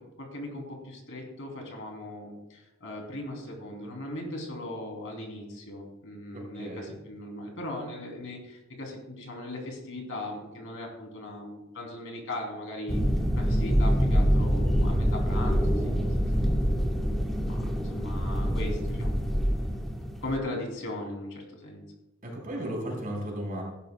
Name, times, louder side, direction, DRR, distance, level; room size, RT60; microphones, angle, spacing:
voice 1, 0.2-13.0 13.4-15.6 17.4-19.7 20.2-21.9, left 1 dB, 60° left, 1 dB, 3.0 m, -38 dB
voice 2, 6.3-7.0 22.2-23.6, equal, 40° right, -2 dB, 4.2 m, -35 dB
sound 1, 12.9-20.4, equal, ahead, 1.2 m, -25 dB
15.5 x 11.5 x 2.3 m, 0.96 s
head